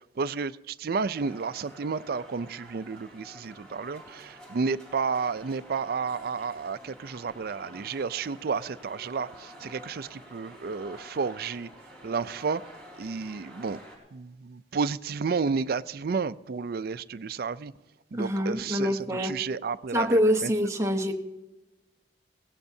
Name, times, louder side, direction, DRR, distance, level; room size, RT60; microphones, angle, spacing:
voice 1, 0.2-11.7 12.0-12.6 13.0-13.8 14.1-17.7 18.1-20.1 20.4-20.5, right 5 dB, 55° right, 14 dB, 0.4 m, -31 dB
sound 1, 1.1-14.0, equal, 5° left, 4.2 m, -49 dB
voice 2, 18.1-19.4 19.9-21.1, equal, 15° right, 4 dB, 1.0 m, -25 dB
20.0 x 17.0 x 2.7 m, 1.1 s
head